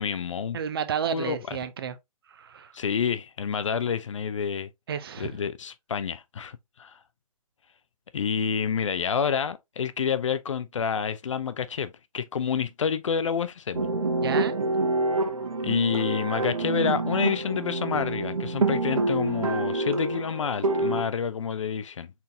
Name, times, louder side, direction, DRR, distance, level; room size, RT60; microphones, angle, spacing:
voice 1, 0.0-0.6 1.1-1.6 2.7-4.7 5.2-7.0 8.1-13.9 15.6-22.1, left 7 dB, 55° left, 0.5 m, -28 dB
voice 2, 0.5-2.0 2.3-2.7 4.9-5.4 14.2-14.5, right 8 dB, 40° right, 0.6 m, -31 dB
sound 1, 13.7-21.0, right 2 dB, 65° right, 1.3 m, -27 dB
4.3 x 3.9 x 2.6 m
figure-of-eight pair, 135°, 19 cm